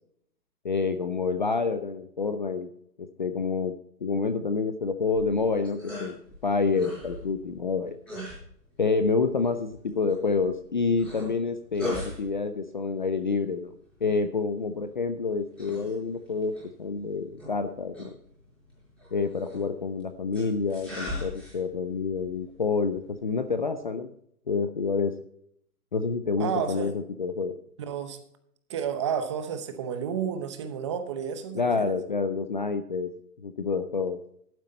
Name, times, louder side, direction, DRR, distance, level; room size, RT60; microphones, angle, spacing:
voice 1, 0.6-2.7 3.0-3.7 4.0-8.0 8.8-13.7 14.0-18.1 19.1-24.1 24.5-25.1 25.9-27.5 31.5-33.1 33.4-34.2, left 4 dB, 35° left, 10 dB, 0.4 m, -28 dB
sound 1, 5.0-23.7, equal, ahead, 5.7 m, -43 dB
voice 2, 26.4-26.9 27.8-28.2 28.7-32.0, right 7 dB, 20° right, 9 dB, 0.8 m, -31 dB
12.0 x 9.4 x 4.2 m, 0.69 s
hypercardioid pair, 165°, 46 cm